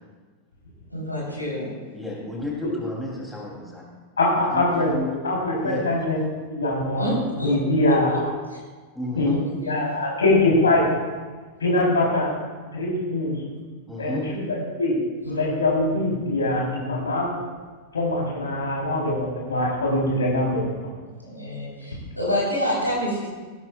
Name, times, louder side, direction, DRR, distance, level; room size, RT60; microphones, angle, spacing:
voice 1, 0.9-1.7 5.6-5.8 6.9-7.5 7.9-8.2 8.5-8.6 9.2-9.7 15.2-15.3 21.2-23.3, equal, 90° left, -5 dB, 3.8 m, -28 dB
voice 2, 1.9-3.8 4.4-5.2 5.6-5.9 8.9-9.4 13.9-14.3, left 1 dB, ahead, -4 dB, 3.1 m, -32 dB
voice 3, 4.2-4.9 5.2-6.2 6.5-7.1 7.4-8.2 9.2-9.3 9.7-10.9 11.6-12.3 12.7-13.4 14.0-15.0 15.2-17.3 17.9-20.9, left 2 dB, 70° left, -3 dB, 3.7 m, -23 dB
16.5 x 12.5 x 2.4 m, 1.4 s
figure-of-eight pair, 90°, 0 cm